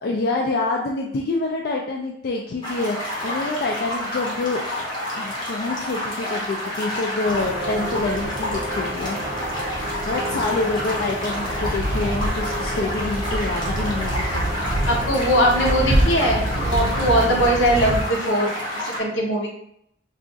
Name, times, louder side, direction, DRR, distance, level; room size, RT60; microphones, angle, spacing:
voice 1, 0.0-3.0 3.2-4.6 5.1-9.2 10.0-14.4, left 3 dB, 55° left, -1 dB, 0.3 m, -26 dB
sound 1, 2.6-19.0, left 1 dB, 25° left, 0.8 m, -29 dB
sound 2, 7.2-18.0, right 1 dB, 30° right, 0.4 m, -27 dB
voice 2, 14.8-19.5, equal, 80° left, 0 dB, 0.8 m, -21 dB
2.4 x 2.4 x 3.8 m, 0.72 s
head